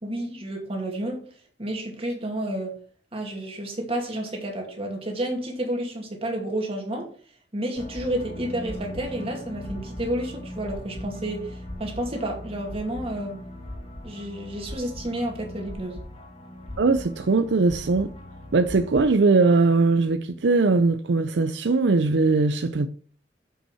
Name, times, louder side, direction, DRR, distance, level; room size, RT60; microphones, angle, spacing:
voice 1, 0.0-1.2 1.6-2.8 3.1-7.1 7.5-13.4 14.0-16.0, right 1 dB, 35° right, 2.5 m, -30 dB
sound 1, 7.8-19.1, left 1 dB, 35° left, 1.8 m, -39 dB
voice 2, 16.8-18.1 18.5-22.9, right 3 dB, 80° right, 0.5 m, -20 dB
7.3 x 5.6 x 5.6 m
head